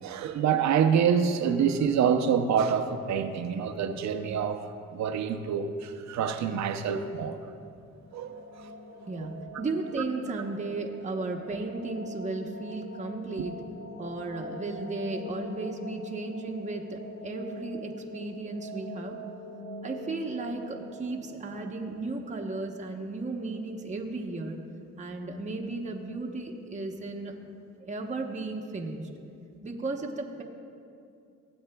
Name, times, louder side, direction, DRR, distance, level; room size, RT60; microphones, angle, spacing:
voice 1, 0.0-4.6 4.9-7.4 8.1-8.4, right 7 dB, 65° right, 0.7 m, -26 dB
sound 1, 8.0-22.9, equal, 35° left, 0.9 m, -43 dB
voice 2, 9.1-13.5 14.0-19.2 19.8-24.6 25.0-27.3 27.8-29.0 29.6-30.4, right 3 dB, 25° right, 0.9 m, -35 dB
16.5 x 7.9 x 2.2 m
cardioid pair, 90°, 30 cm